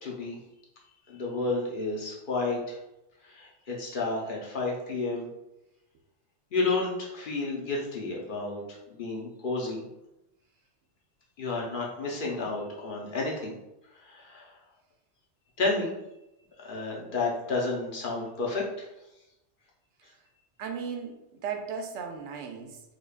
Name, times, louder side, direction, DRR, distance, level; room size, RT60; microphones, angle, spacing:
voice 1, 0.0-0.4 1.1-2.8 3.3-5.3 6.5-8.6 8.9-9.8 11.4-13.5 14.0-14.5 15.6-15.9 16.6-18.9, left 3 dB, 50° left, -2 dB, 0.9 m, -31 dB
voice 2, 20.6-22.8, right 6 dB, 80° right, 3 dB, 0.9 m, -36 dB
5.0 x 2.3 x 2.4 m, 0.91 s
omnidirectional pair, 1.2 m